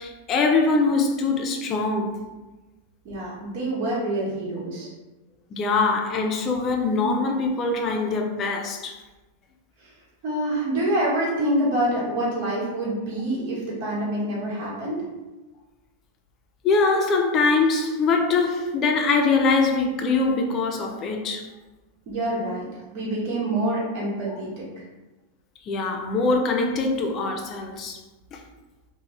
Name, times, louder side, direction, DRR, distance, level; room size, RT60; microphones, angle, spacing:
voice 1, 0.0-2.3 5.5-9.0 16.6-21.5 24.3-24.4 25.6-28.0 28.3-28.4, left 3 dB, 35° left, 0.4 m, -23 dB
voice 2, 3.0-4.9 9.8-9.9 10.2-15.0 22.1-24.8, right 1 dB, 55° right, 1.1 m, -26 dB
2.5 x 2.2 x 3.0 m
hypercardioid pair, 110°, 0 cm